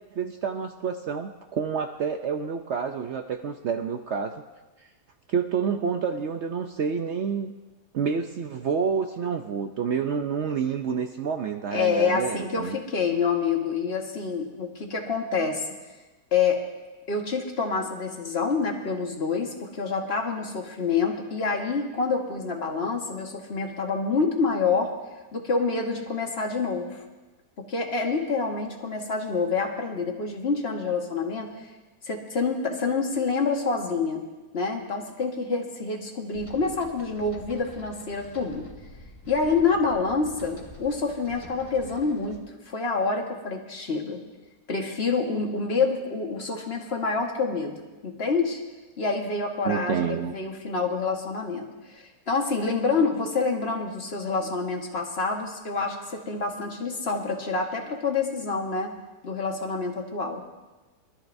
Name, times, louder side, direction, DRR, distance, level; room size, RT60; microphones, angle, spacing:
voice 1, 0.1-4.4 5.3-7.5 7.9-12.8 49.6-50.4, right 6 dB, 70° right, 6 dB, 0.6 m, -28 dB
voice 2, 11.7-15.6 16.3-16.6 17.1-24.9 25.3-27.0 27.6-31.5 32.0-34.3 34.5-38.7 39.3-42.4 42.7-44.2 44.7-47.8 48.0-48.6 49.0-58.9 59.2-60.4, left 4 dB, 40° left, 2 dB, 1.5 m, -27 dB
sound 1, 36.3-42.4, left 1 dB, 20° left, 1.4 m, -46 dB
23.5 x 13.0 x 2.6 m, 1.2 s
omnidirectional pair, 1.8 m